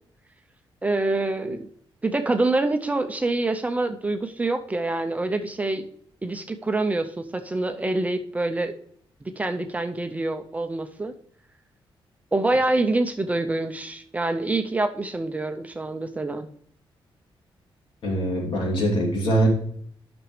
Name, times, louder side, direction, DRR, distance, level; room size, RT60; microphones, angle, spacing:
voice 1, 0.8-1.7 2.0-5.9 6.2-8.8 9.4-11.1 12.3-16.5, right 2 dB, 15° right, 7 dB, 0.5 m, -26 dB
voice 2, 18.0-19.5, right 1 dB, 70° left, -2 dB, 2.8 m, -23 dB
11.0 x 6.0 x 3.2 m, 0.63 s
wide cardioid pair, 150°, 9 cm